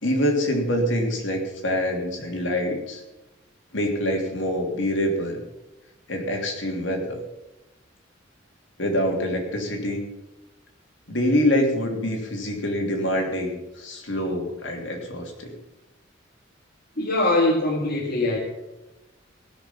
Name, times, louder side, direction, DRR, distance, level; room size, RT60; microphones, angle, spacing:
voice 1, 0.0-3.0 3.7-5.4 6.1-7.2 8.8-10.0 11.1-15.6, equal, 70° left, 2 dB, 2.9 m, -25 dB
voice 2, 17.0-18.4, left 2 dB, 50° left, -2 dB, 1.8 m, -22 dB
17.5 x 6.6 x 7.1 m, 1.0 s
head